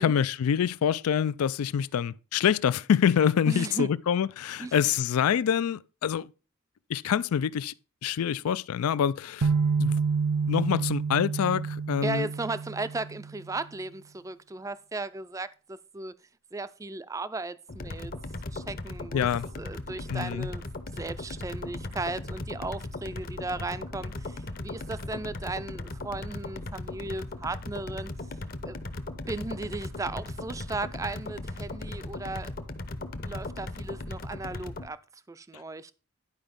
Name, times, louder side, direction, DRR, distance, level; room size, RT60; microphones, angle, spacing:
voice 1, 0.0-6.3 6.9-7.7 8.0-9.5 9.8-10.0 10.5-12.3 19.1-19.5 20.1-20.5, left 8 dB, 85° left, 0.4 m, -26 dB
voice 2, 3.5-3.9 4.6-4.7 12.0-16.1 16.5-18.1 18.5-19.3 19.6-20.7 20.9-28.1 28.6-32.5 33.2-35.0 35.3-35.9, right 3 dB, 15° right, 0.3 m, -36 dB
sound 1, 9.4-13.4, right 5 dB, 85° right, 0.6 m, -28 dB
sound 2, 17.7-34.9, left 2 dB, 40° left, 0.7 m, -38 dB
11.0 x 4.9 x 5.2 m
head